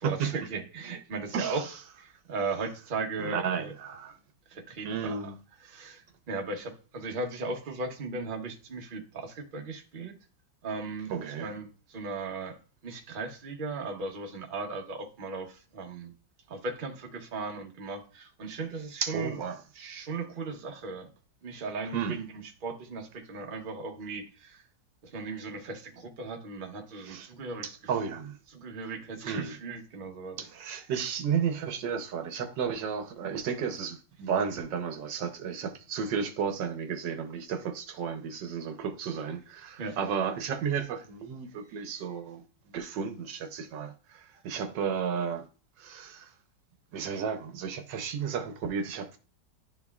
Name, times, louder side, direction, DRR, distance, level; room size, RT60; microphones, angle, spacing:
voice 1, 0.0-1.7 2.0-3.7 4.5-5.2 5.6-10.1 10.6-11.1 11.4-12.6 12.8-16.1 16.5-19.4 19.7-21.1 21.4-22.3 22.6-24.6 25.1-27.7 28.5-30.4 39.8-40.0 41.7-42.0, right 3 dB, 35° right, 0.9 m, -37 dB
voice 2, 3.2-4.2 4.8-5.4 11.1-11.5 19.0-19.6 21.9-22.2 27.0-27.3 27.6-28.4 29.2-29.6 30.4-45.5 45.8-46.3 46.9-49.2, right 7 dB, 80° right, 1.4 m, -33 dB
10.5 x 4.5 x 2.3 m
omnidirectional pair, 2.0 m